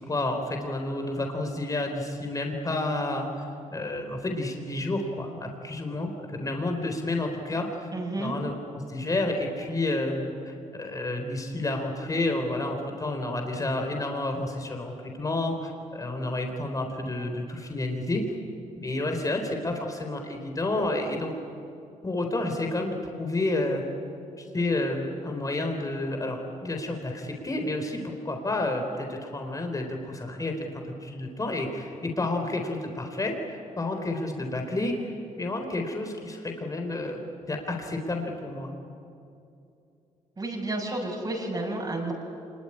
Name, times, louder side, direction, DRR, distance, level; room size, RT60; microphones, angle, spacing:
voice 1, 0.0-3.3 3.7-18.2 18.7-21.3 22.0-23.8 24.4-37.2 37.5-38.7, left 2 dB, 25° left, 4 dB, 4.1 m, -30 dB
voice 2, 7.9-8.4 40.4-42.1, right 2 dB, 30° right, -2 dB, 7.0 m, -31 dB
25.5 x 21.5 x 9.9 m, 2.7 s
cardioid pair, 80°, 13 cm